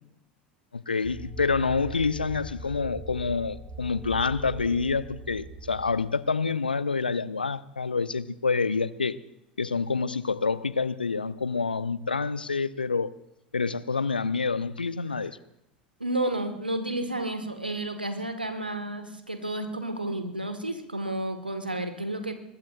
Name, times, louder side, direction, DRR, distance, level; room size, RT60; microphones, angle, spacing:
voice 1, 0.7-9.2 9.6-13.1 13.5-15.4, left 4 dB, 80° left, 0.6 m, -27 dB
sound 1, 1.0-6.0, right 1 dB, 30° right, 7.1 m, -41 dB
voice 2, 16.0-22.4, right 1 dB, 85° right, 1.6 m, -31 dB
24.0 x 20.5 x 2.5 m
figure-of-eight pair, 75°, 5 cm